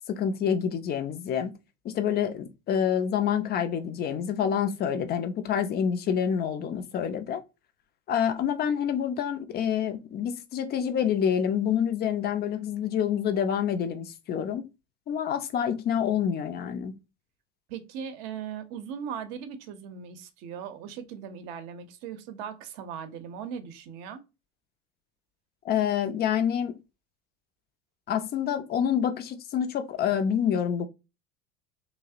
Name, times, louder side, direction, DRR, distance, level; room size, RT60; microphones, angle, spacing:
voice 1, 0.1-1.5 1.8-7.4 8.1-14.7 15.1-16.9 25.6-26.7 28.1-30.9, left 8 dB, 30° left, 0.4 m, -27 dB
voice 2, 17.7-24.2, right 7 dB, 55° right, 0.6 m, -39 dB
2.6 x 2.0 x 2.4 m
hypercardioid pair, 80°, 33 cm